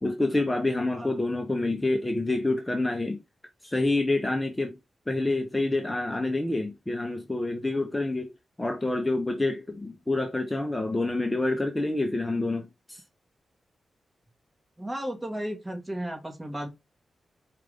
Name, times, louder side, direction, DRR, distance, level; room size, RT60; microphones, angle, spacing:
voice 1, 0.0-3.2 3.6-4.8 5.1-8.3 8.6-13.0, left 2 dB, 15° left, 0.7 m, -27 dB
voice 2, 14.8-16.7, equal, 15° right, 1.4 m, -34 dB
4.7 x 2.5 x 3.4 m
cardioid pair, 70°, 0 cm